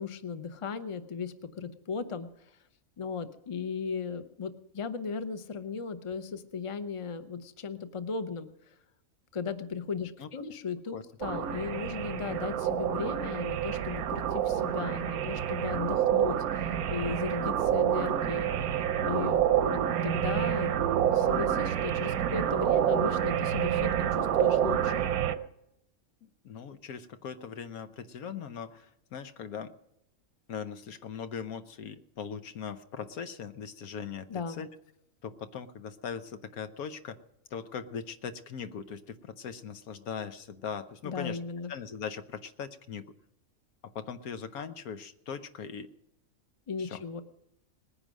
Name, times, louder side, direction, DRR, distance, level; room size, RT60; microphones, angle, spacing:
voice 1, 0.0-2.6 3.0-8.7 9.3-18.5 19.0-20.7 21.0-25.0 34.3-34.6 41.0-41.7 46.7-47.2, left 5 dB, 30° left, 10 dB, 0.7 m, -36 dB
sound 1, 11.2-25.4, right 10 dB, 90° right, 1.2 m, -28 dB
voice 2, 26.2-29.7 30.5-34.7 35.2-37.2 37.5-41.4 41.7-43.1 43.8-45.9 46.8-47.0, left 7 dB, 90° left, 10 dB, 1.3 m, -40 dB
19.5 x 10.0 x 6.3 m, 0.83 s
omnidirectional pair, 1.5 m